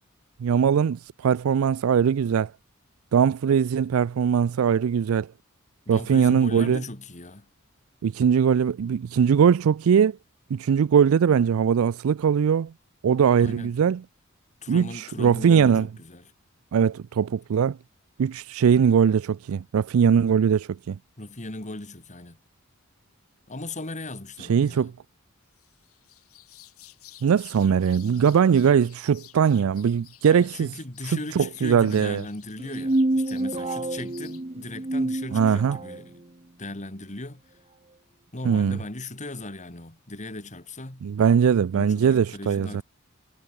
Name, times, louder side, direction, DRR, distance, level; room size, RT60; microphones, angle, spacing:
voice 1, 0.4-2.5 3.1-5.3 5.9-6.8 8.0-10.1 10.5-12.7 13.0-14.0 14.7-15.9 16.7-17.8 18.2-21.0 24.5-24.9 27.2-30.7 31.0-32.2 35.3-35.8 38.5-38.8 41.0-42.7, right 7 dB, 75° right, 0.4 m, -21 dB
voice 2, 5.9-7.5 13.4-13.7 14.6-16.3 21.2-22.4 23.5-24.9 30.3-36.2 36.6-37.6 38.3-41.1 41.7-42.8, left 2 dB, 35° left, 2.5 m, -38 dB
sound 1, 25.5-34.4, left 14 dB, 90° left, 2.9 m, -53 dB
sound 2, 32.6-36.0, right 2 dB, 30° right, 1.0 m, -27 dB
head